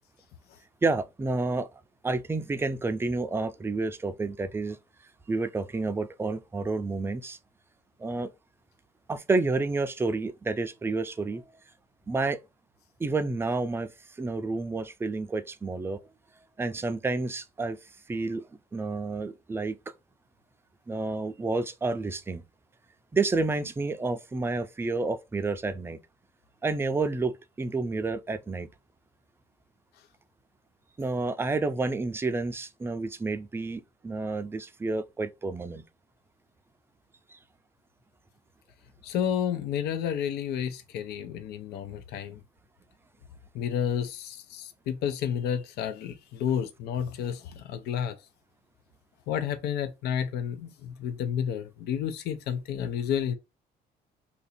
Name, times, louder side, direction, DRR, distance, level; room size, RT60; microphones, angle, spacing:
voice 1, 0.8-1.7 2.0-4.8 5.3-7.4 8.0-8.3 9.1-11.4 12.1-12.4 13.0-13.9 14.2-16.0 16.6-17.8 18.1-18.4 18.7-19.7 20.9-22.4 23.1-26.0 26.6-28.7 31.0-35.8 37.3-37.4, right 3 dB, 15° right, 0.4 m, -29 dB
voice 2, 39.0-42.4 43.5-48.2 49.3-53.3, left 8 dB, 75° left, 0.6 m, -31 dB
2.8 x 2.6 x 4.1 m
cardioid pair, 110°, 17 cm